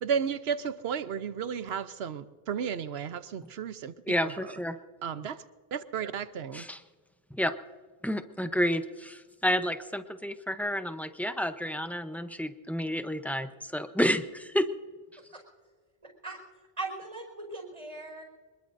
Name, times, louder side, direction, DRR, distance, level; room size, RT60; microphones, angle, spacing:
voice 1, 0.0-3.9 4.2-4.5 5.0-5.4 5.7-6.7, right 7 dB, 85° right, 13 dB, 1.0 m, -33 dB
voice 2, 4.1-4.8 6.5-6.8 7.3-7.5 8.0-14.7, equal, ahead, 9 dB, 0.5 m, -30 dB
voice 3, 16.8-18.2, right 3 dB, 30° right, 2 dB, 5.1 m, -39 dB
25.0 x 21.5 x 2.6 m, 1.4 s
omnidirectional pair, 1.0 m